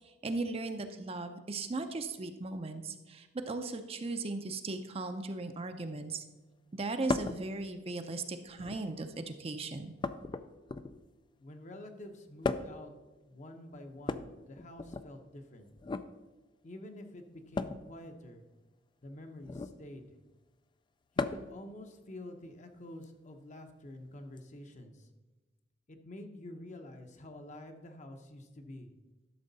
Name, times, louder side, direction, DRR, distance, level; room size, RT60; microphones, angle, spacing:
voice 1, 0.0-6.2 6.7-9.9, right 3 dB, 30° right, 7 dB, 0.6 m, -37 dB
sound 1, 7.1-7.4 8.5-9.0 10.0-11.1 12.4-12.9 14.0-15.1 15.8-16.1 17.5-17.9 19.4-19.8 21.2-21.6 23.0-23.1 24.4-24.5, left 3 dB, 25° left, 0.3 m, -36 dB
voice 2, 11.4-12.9 13.3-15.7 16.6-18.4 19.0-20.1 21.2-25.1 25.9-28.9, left 1 dB, 40° left, 6 dB, 0.8 m, -48 dB
12.0 x 6.3 x 4.0 m, 1.2 s
head